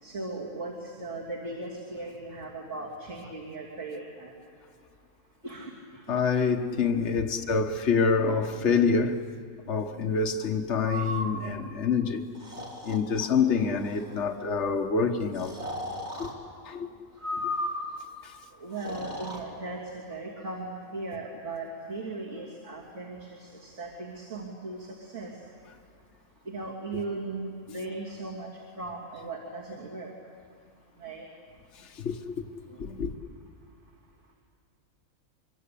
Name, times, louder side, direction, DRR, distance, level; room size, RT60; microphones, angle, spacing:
voice 1, 0.0-4.3 5.4-6.2 18.6-25.3 26.5-28.5 28.8-30.1 31.0-31.3, right 2 dB, 60° right, 3.4 m, -38 dB
voice 2, 6.1-9.2 9.7-12.2 12.8-15.6 16.2-16.3 16.6-16.9 17.4-17.5 18.2-18.3 31.8-33.1, left 5 dB, 55° left, 1.5 m, -27 dB
Breathing, 10.8-11.3 12.3-13.3 13.8-14.2 15.3-16.3 17.2-18.0 18.7-19.4, left 1 dB, 30° right, 3.5 m, -35 dB
25.0 x 24.0 x 8.5 m
omnidirectional pair, 1.5 m